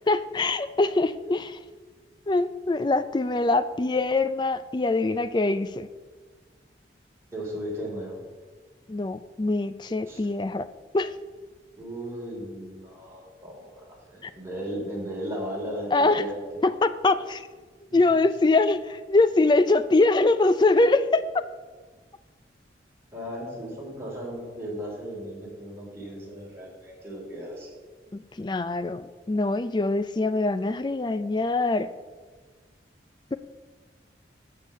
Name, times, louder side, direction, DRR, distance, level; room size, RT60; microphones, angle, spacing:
voice 1, 0.1-1.6 2.3-5.9 8.9-10.7 10.9-11.1 14.2-14.3 15.9-16.3 16.6-17.5 17.9-21.3 28.3-31.9, left 2 dB, 25° left, 13 dB, 0.4 m, -23 dB
voice 2, 7.3-8.2 10.1-10.2 11.8-16.3 17.9-18.0 23.1-27.7, equal, 15° right, -5 dB, 3.2 m, -36 dB
7.3 x 6.6 x 7.8 m, 1.4 s
head